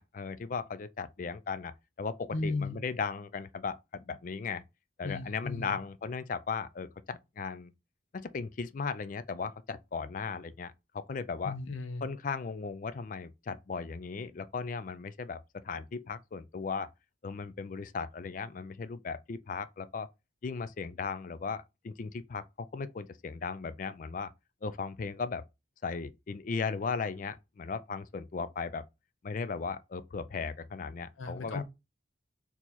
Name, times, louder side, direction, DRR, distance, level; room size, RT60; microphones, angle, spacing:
voice 1, 0.0-4.6 5.0-7.7 8.1-11.6 12.0-16.9 17.2-20.1 20.4-24.3 24.6-25.4 25.8-28.8 29.2-31.6, left 5 dB, 40° left, 0.3 m, -37 dB
voice 2, 2.3-2.8 5.0-5.8 11.4-12.0 31.2-31.6, left 3 dB, 85° left, 0.7 m, -35 dB
4.5 x 2.8 x 4.1 m
head